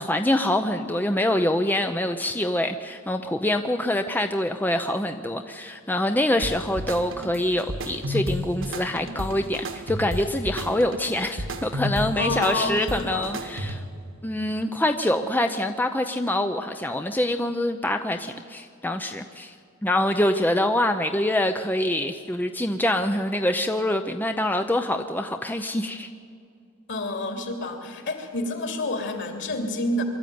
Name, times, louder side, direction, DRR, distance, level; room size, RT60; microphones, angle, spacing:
voice 1, 0.0-13.8 14.2-19.5 19.8-26.1, left 1 dB, 10° left, 6 dB, 0.6 m, -25 dB
sound 1, 6.4-14.0, equal, 60° right, 1.6 m, -32 dB
voice 2, 12.2-13.3 26.9-30.0, left 2 dB, 55° left, 4 dB, 3.2 m, -29 dB
23.5 x 13.5 x 9.4 m, 2.3 s
head